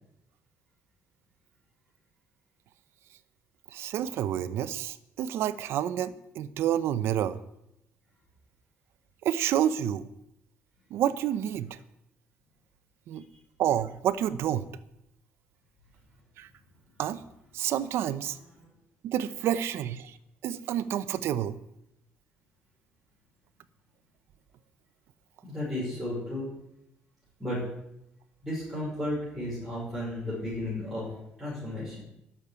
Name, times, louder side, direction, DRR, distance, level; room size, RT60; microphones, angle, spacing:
voice 1, 3.7-7.4 9.2-10.0 10.9-11.8 13.1-13.2 13.6-14.7 16.4-16.5 17.0-17.2 17.5-18.4 19.0-20.2 20.4-21.6, right 10 dB, 70° right, 14 dB, 0.8 m, -29 dB
voice 2, 25.4-26.5 27.4-27.6 28.4-31.1 31.4-32.0, left 1 dB, ahead, -9 dB, 5.6 m, -33 dB
12.0 x 7.3 x 9.6 m, 0.83 s
cardioid pair, 155°, 4 cm